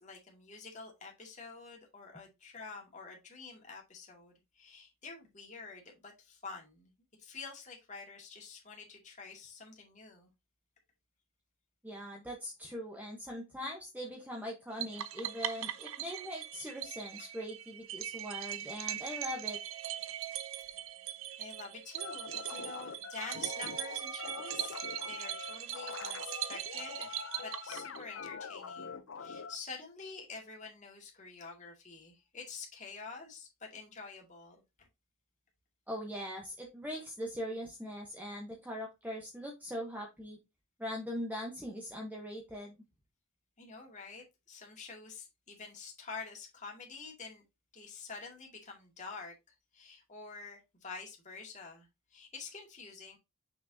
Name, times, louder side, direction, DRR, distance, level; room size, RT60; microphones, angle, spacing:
voice 1, 0.0-6.9 7.2-10.3 17.2-17.3 21.4-24.8 25.0-34.9 43.6-47.4 47.7-53.2, left 4 dB, 35° left, 0 dB, 2.1 m, -48 dB
voice 2, 11.8-19.6 35.9-40.4 40.8-42.7, equal, 10° right, 0 dB, 1.1 m, -41 dB
sound 1, 14.8-28.2, right 12 dB, 75° right, 0.6 m, -40 dB
sound 2, 22.0-29.6, left 5 dB, 65° left, 0.6 m, -44 dB
6.2 x 5.9 x 2.7 m, 0.23 s
head